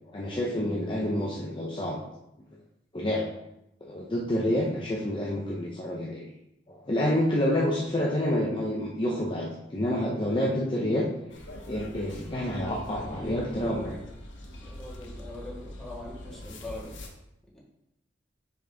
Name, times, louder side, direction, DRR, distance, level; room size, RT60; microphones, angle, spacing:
voice 1, 0.1-2.0 2.9-3.3 3.8-6.3 6.7-11.1 11.7-14.0, left 1 dB, 25° left, -3 dB, 0.7 m, -28 dB
sound 1, 11.3-17.1, left 1 dB, 90° left, 1.0 m, -43 dB
voice 2, 14.6-16.9 17.5-17.6, left 1 dB, ahead, -6 dB, 1.7 m, -42 dB
6.2 x 5.0 x 3.4 m, 0.85 s
head